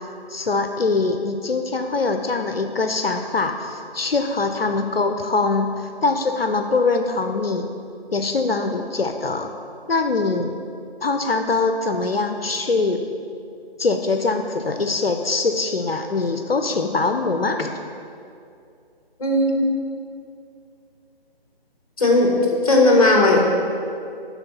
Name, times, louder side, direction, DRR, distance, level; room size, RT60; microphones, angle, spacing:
voice 1, 0.3-7.7 8.1-9.5 9.9-10.6 11.0-13.0 13.8-17.7, left 3 dB, 70° left, 6 dB, 0.6 m, -23 dB
voice 2, 19.2-19.7 22.0-22.4 22.6-23.4, left 2 dB, 35° left, 0 dB, 1.2 m, -16 dB
11.5 x 4.1 x 4.1 m, 2.5 s
figure-of-eight pair, 155°, 31 cm